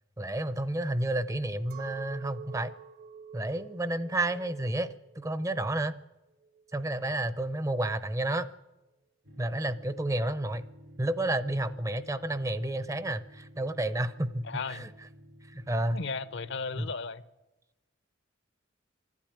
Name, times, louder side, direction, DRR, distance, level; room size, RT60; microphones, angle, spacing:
voice 1, 0.2-2.7 3.3-4.9 5.1-6.0 6.7-8.5 9.4-10.6 11.0-14.9 15.5-16.0 16.8-16.9, right 1 dB, 15° right, 0.6 m, -31 dB
Chink clink, 1.7-7.2, right 7 dB, 50° right, 0.8 m, -49 dB
sound 1, 9.2-17.0, equal, 70° right, 1.7 m, -52 dB
voice 2, 14.4-14.9 15.9-17.2, left 4 dB, 65° left, 0.7 m, -36 dB
24.5 x 12.0 x 8.8 m
head